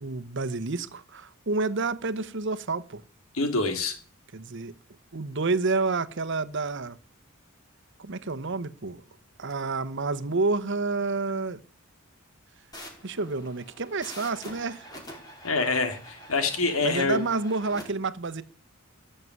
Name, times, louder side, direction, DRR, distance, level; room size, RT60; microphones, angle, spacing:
voice 1, 0.0-3.0 4.3-4.7 5.1-7.0 8.0-9.0 9.4-11.6 13.0-14.9 16.8-18.4, right 3 dB, 60° right, 1.0 m, -29 dB
voice 2, 3.3-4.0 15.4-17.2, left 3 dB, 80° left, 3.0 m, -26 dB
sound 1, 12.7-17.8, equal, 20° left, 4.9 m, -45 dB
17.0 x 6.7 x 9.5 m
head